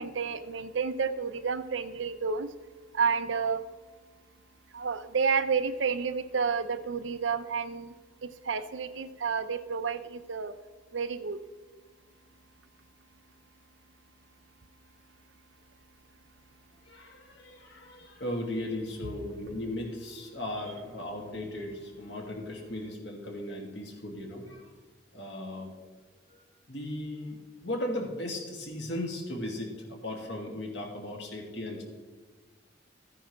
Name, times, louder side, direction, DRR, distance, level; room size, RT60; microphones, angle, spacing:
voice 1, 0.0-2.5 2.9-3.6 4.7-7.9 8.2-10.6 10.9-11.4, right 5 dB, 85° right, 11 dB, 0.7 m, -30 dB
voice 2, 16.9-24.7 25.1-25.7 26.3-31.8, left 1 dB, 65° left, 1 dB, 2.2 m, -37 dB
14.0 x 10.0 x 3.2 m, 1.4 s
head